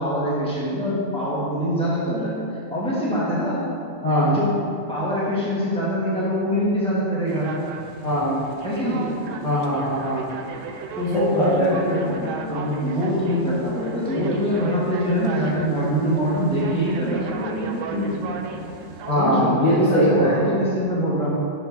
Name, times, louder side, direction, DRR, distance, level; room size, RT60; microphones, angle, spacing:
voice 1, 0.0-2.3 2.7-3.6 4.2-4.5 4.9-7.4 8.6-9.0 11.0-18.2 19.2-21.3, equal, 5° left, -8 dB, 1.7 m, -24 dB
voice 2, 4.0-4.3 8.0-8.4 9.4-10.2 11.3-11.8 19.1-20.5, equal, 30° left, -11 dB, 1.3 m, -21 dB
sound 1, 7.3-19.1, right 5 dB, 75° right, 0.9 m, -36 dB
6.8 x 5.4 x 4.1 m, 2.5 s
omnidirectional pair, 1.4 m